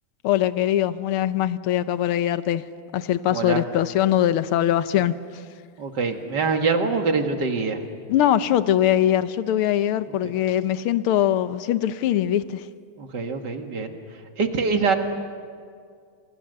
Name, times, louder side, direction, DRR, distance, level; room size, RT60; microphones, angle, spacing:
voice 1, 0.2-2.6 2.9-5.1 8.1-12.7, left 11 dB, 85° left, 13 dB, 1.7 m, -22 dB
voice 2, 3.3-3.6 5.8-7.8 10.1-10.3 13.0-14.0 14.4-15.0, right 4 dB, 55° right, 5 dB, 2.4 m, -24 dB
30.0 x 26.5 x 6.7 m, 2.1 s
omnidirectional pair, 2.3 m